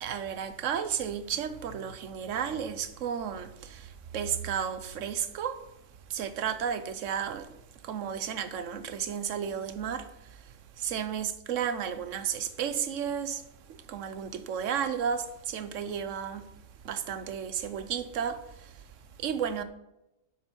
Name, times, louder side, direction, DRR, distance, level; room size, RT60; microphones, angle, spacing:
voice 1, 0.0-5.6 6.1-7.5 7.8-10.4 10.8-13.4 13.9-16.5 16.8-18.8 19.2-19.6, right 8 dB, 70° right, 1.1 m, -33 dB
11.0 x 7.7 x 4.6 m
omnidirectional pair, 1.4 m